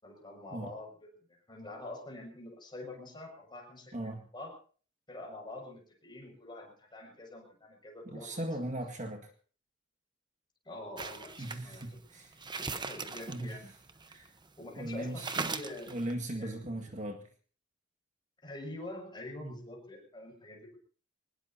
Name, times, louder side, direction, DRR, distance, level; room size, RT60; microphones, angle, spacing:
voice 1, 0.0-1.1 1.5-4.5 5.1-8.4 10.6-12.0 12.4-13.7 14.6-16.0 16.3-16.9 18.4-20.8, left 1 dB, 25° left, 1 dB, 6.5 m, -46 dB
voice 2, 3.9-4.3 8.1-9.3 11.4-12.4 13.3-13.6 14.1-14.3 14.8-15.5 15.9-17.2 19.4-19.6, right 1 dB, 40° right, 3 dB, 2.0 m, -38 dB
sound 1, 11.0-14.5 14.8-14.9 15.2-16.1, right 4 dB, 25° right, 1.0 m, -39 dB
23.5 x 20.0 x 2.9 m, 0.41 s
head